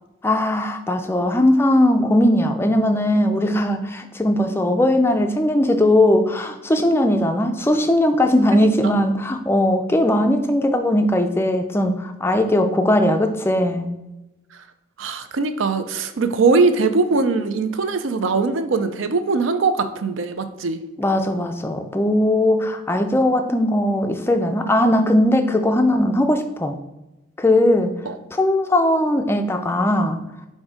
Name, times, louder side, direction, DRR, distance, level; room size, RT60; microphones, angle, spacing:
voice 1, 0.2-13.9 21.0-26.8 27.4-28.0 28.3-30.2, left 1 dB, 10° left, 6 dB, 0.3 m, -19 dB
voice 2, 8.5-8.9 15.0-20.8 28.1-28.2, right 4 dB, 70° right, 10 dB, 0.5 m, -21 dB
7.2 x 2.7 x 4.9 m, 1.0 s
head